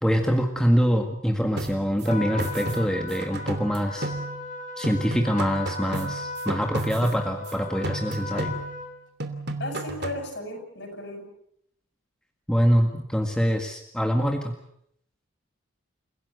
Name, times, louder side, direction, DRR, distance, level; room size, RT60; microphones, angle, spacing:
voice 1, 0.0-4.1 4.8-8.5 12.5-14.5, equal, 5° left, 3 dB, 1.9 m, -24 dB
sound 1, 1.6-4.6 4.8-7.5 7.8-8.9 9.2-10.3, right 2 dB, 50° right, 2.8 m, -34 dB
Trumpet, 2.1-9.0, left 3 dB, 40° left, 4.7 m, -36 dB
voice 2, 9.6-11.3, left 1 dB, 55° left, 5 dB, 7.7 m, -35 dB
29.5 x 17.0 x 8.0 m, 0.72 s
head